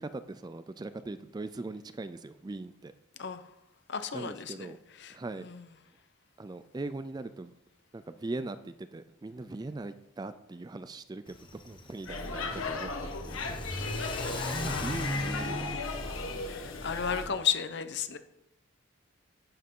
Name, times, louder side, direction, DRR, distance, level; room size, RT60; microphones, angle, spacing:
voice 1, 0.0-2.9 4.1-4.8 5.1-5.5 6.4-7.5 7.9-13.7 14.3-15.7, right 2 dB, 20° right, 12 dB, 0.3 m, -40 dB
voice 2, 3.9-4.7 5.0-5.1 5.4-5.6 13.7-15.1 16.5-18.2, left 7 dB, 55° left, 10 dB, 0.8 m, -34 dB
Car / Accelerating revving vroom, 11.3-17.4, left 1 dB, 25° left, 1.0 m, -39 dB
Speech / Shout / Subway metro underground, 12.1-17.3, left 3 dB, 85° left, 1.4 m, -36 dB
11.5 x 8.1 x 3.7 m, 0.86 s
head